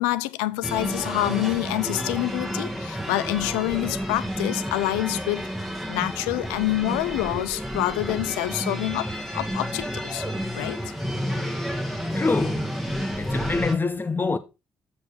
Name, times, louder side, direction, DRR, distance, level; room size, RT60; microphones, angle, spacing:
voice 1, 0.0-5.5 5.9-10.2 10.5-10.8, left 17 dB, 85° left, 0.4 m, -27 dB
sound 1, 0.6-13.8, equal, ahead, 1.9 m, -30 dB
voice 2, 12.1-12.8 13.1-14.4, left 4 dB, 30° left, 1.2 m, -25 dB
7.4 x 4.7 x 5.2 m
hypercardioid pair, 45°, 7 cm